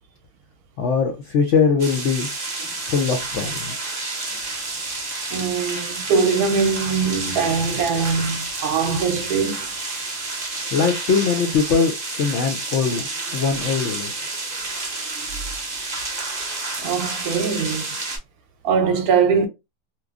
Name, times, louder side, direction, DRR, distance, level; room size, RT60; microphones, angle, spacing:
voice 1, 0.8-2.3 2.9-3.7 10.7-13.0 13.3-14.3, left 5 dB, 80° left, 0.6 m, -21 dB
sound 1, 1.8-18.2, right 3 dB, 45° right, 0.5 m, -30 dB
voice 2, 5.3-9.7 16.8-18.0 18.6-19.5, right 5 dB, 70° right, 1.0 m, -22 dB
2.9 x 2.2 x 2.3 m
omnidirectional pair, 1.8 m